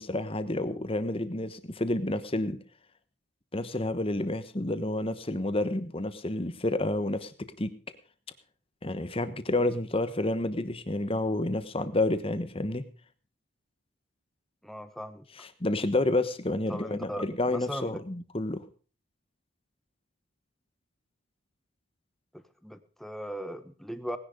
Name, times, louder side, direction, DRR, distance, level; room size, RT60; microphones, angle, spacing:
voice 1, 0.0-2.6 3.5-7.7 8.8-12.9 15.4-18.6, left 2 dB, 25° left, 12 dB, 1.1 m, -29 dB
voice 2, 14.6-15.3 16.7-18.0 22.6-24.2, equal, ahead, 10 dB, 1.0 m, -38 dB
18.5 x 10.5 x 5.0 m, 0.39 s
head